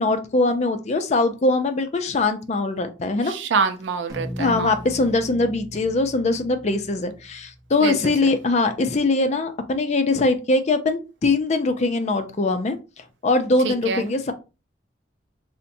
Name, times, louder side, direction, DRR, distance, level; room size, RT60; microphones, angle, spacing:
voice 1, 0.0-3.3 4.4-12.8 13.2-14.3, left 2 dB, 40° left, 0.4 m, -22 dB
voice 2, 3.3-4.7 7.8-8.3 13.6-14.0, right 5 dB, 80° right, 0.5 m, -26 dB
sound 1, 4.1-8.7, equal, 20° right, 0.7 m, -39 dB
3.9 x 2.1 x 2.6 m
head